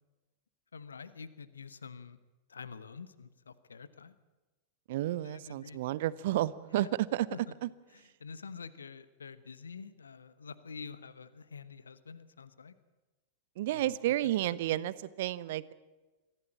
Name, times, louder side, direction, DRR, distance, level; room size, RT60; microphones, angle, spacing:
voice 1, 0.7-2.2 2.5-4.1 5.2-5.8 6.7-6.9 7.3-7.6 7.9-12.7 13.7-13.9 14.2-14.9, left 5 dB, 70° left, 15 dB, 1.0 m, -47 dB
voice 2, 4.9-7.3 7.6-7.7 13.6-15.7, right 14 dB, 55° right, 18 dB, 0.8 m, -31 dB
24.0 x 15.5 x 8.6 m, 1.2 s
figure-of-eight pair, 90°, 0 cm